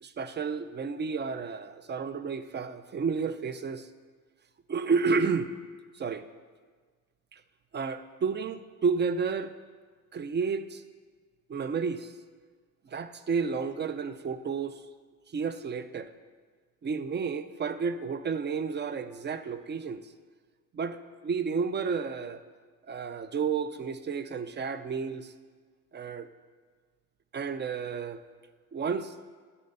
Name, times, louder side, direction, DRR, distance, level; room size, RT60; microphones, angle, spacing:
voice 1, 0.0-3.9 4.7-5.5 5.9-6.2 7.3-7.4 7.7-9.5 10.1-10.8 11.5-12.1 12.9-14.8 15.3-16.1 16.8-20.0 20.7-22.4 22.9-25.3 25.9-26.3 27.3-28.2 28.7-29.1, right 5 dB, 30° right, 12 dB, 0.5 m, -31 dB
12.5 x 4.3 x 5.5 m, 1.5 s
cardioid pair, 95°, 33 cm